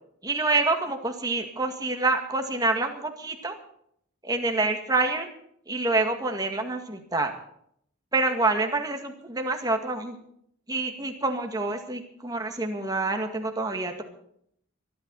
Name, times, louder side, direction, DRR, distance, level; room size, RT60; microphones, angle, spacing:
voice 1, 0.2-3.6 4.2-5.3 5.7-7.3 8.1-10.2 10.7-14.0, right 3 dB, 20° right, 4 dB, 1.9 m, -27 dB
24.0 x 12.0 x 4.1 m, 0.68 s
head